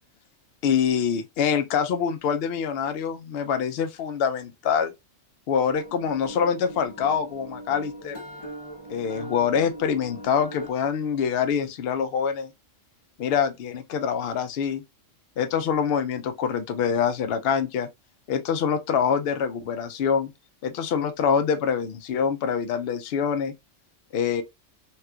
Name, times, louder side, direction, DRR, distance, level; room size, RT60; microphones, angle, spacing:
voice 1, 0.6-4.9 5.5-8.2 8.9-12.5 13.2-14.8 15.4-17.9 18.3-20.3 20.6-23.5 24.1-24.4, left 7 dB, 65° left, 0.7 m, -25 dB
sound 1, 5.7-10.7, right 1 dB, 25° left, 0.7 m, -40 dB
3.2 x 2.9 x 2.3 m
omnidirectional pair, 1.3 m